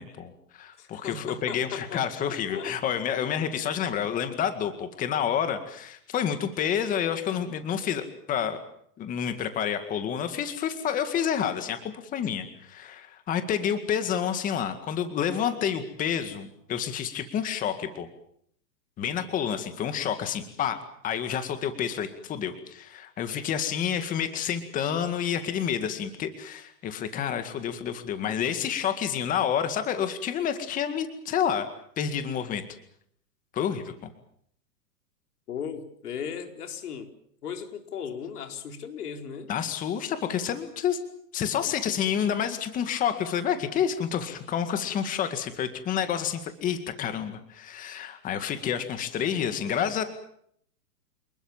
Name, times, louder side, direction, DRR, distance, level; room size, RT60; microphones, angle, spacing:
voice 1, 0.0-8.6 9.0-18.1 19.0-20.8 21.0-31.7 32.0-32.6 33.5-34.1 39.5-41.0 41.3-50.0, left 8 dB, 15° left, 9 dB, 2.0 m, -29 dB
voice 2, 0.8-2.7 35.5-37.1 37.4-39.5, left 7 dB, 65° left, 5 dB, 4.5 m, -37 dB
28.0 x 20.5 x 7.3 m, 0.67 s
hypercardioid pair, 155°, 48 cm